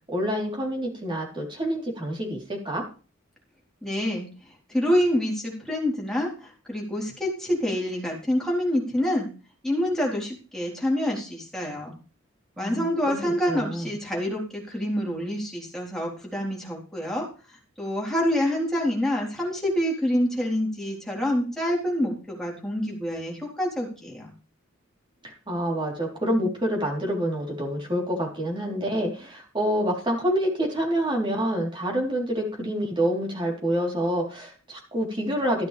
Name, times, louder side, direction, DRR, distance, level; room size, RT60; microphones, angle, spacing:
voice 1, 0.1-2.8 12.6-13.9 25.2-35.7, equal, 25° right, 0 dB, 3.7 m, -27 dB
voice 2, 3.8-4.3 4.7-9.3 9.6-12.0 12.6-24.3, equal, ahead, -3 dB, 4.0 m, -27 dB
13.5 x 11.5 x 3.4 m, 0.36 s
head